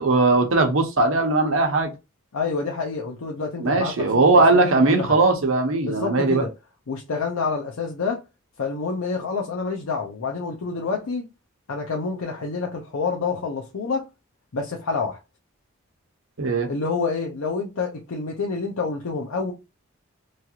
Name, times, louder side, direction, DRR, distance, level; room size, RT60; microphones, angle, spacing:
voice 1, 0.0-1.9 3.6-6.4 16.4-16.7, right 3 dB, 65° right, 0.8 m, -19 dB
voice 2, 2.3-5.2 5.8-6.5 6.9-8.2 8.6-11.3 11.7-14.1 14.5-15.2 16.7-19.5, left 4 dB, 85° left, 0.6 m, -28 dB
3.1 x 2.4 x 2.8 m
head